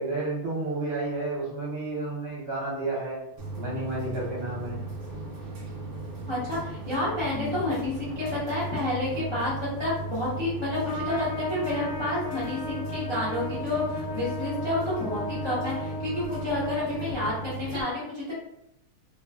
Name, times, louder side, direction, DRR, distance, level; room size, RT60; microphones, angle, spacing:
voice 1, 0.0-3.2 3.5-4.8 7.3-7.6, right 2 dB, 50° right, -7 dB, 0.9 m, -31 dB
sound 1, 3.4-17.8, right 3 dB, 80° right, 0.5 m, -37 dB
voice 2, 6.3-18.3, left 2 dB, 50° left, -8 dB, 0.3 m, -30 dB
Trumpet, 10.8-17.4, left 3 dB, 80° left, 1.2 m, -36 dB
2.9 x 2.3 x 2.2 m, 0.80 s
omnidirectional pair, 1.7 m